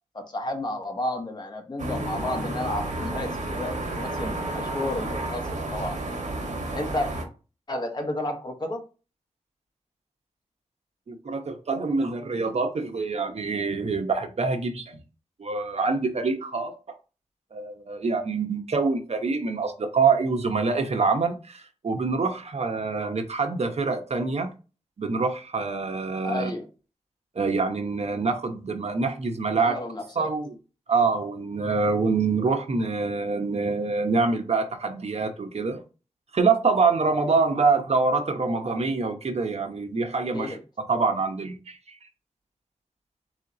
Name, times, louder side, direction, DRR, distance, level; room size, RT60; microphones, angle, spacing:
voice 1, 0.1-6.0 6.7-7.1 7.7-8.8 26.2-26.7 29.6-30.3 40.3-40.6, left 1 dB, 35° left, 1.0 m, -32 dB
sound 1, 1.8-7.2, right 2 dB, 80° right, 1.1 m, -31 dB
voice 2, 11.1-15.0 15.4-16.7 17.5-24.5 25.0-26.5 27.3-29.8 30.2-30.6 30.9-35.8 36.3-40.6 40.9-42.0, right 4 dB, 60° right, 0.9 m, -25 dB
3.9 x 3.1 x 3.8 m
wide cardioid pair, 75°, 13 cm